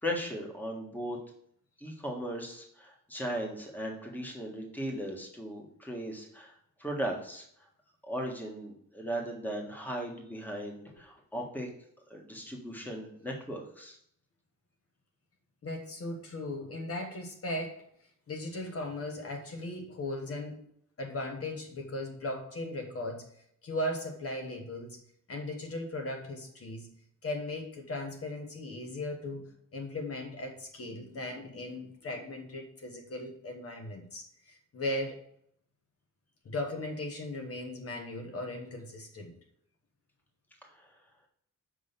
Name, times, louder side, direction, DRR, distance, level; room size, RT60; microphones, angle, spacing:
voice 1, 0.0-1.2 1.8-6.5 6.8-7.4 8.0-11.7 12.1-14.0 40.6-40.9, equal, 5° left, 0 dB, 1.4 m, -37 dB
voice 2, 15.6-17.9 18.3-20.6 21.0-23.3 23.6-25.0 25.3-26.9 27.2-35.2 36.4-39.3, left 1 dB, 50° left, 3 dB, 1.4 m, -37 dB
6.3 x 5.4 x 6.8 m, 0.67 s
wide cardioid pair, 180°, 31 cm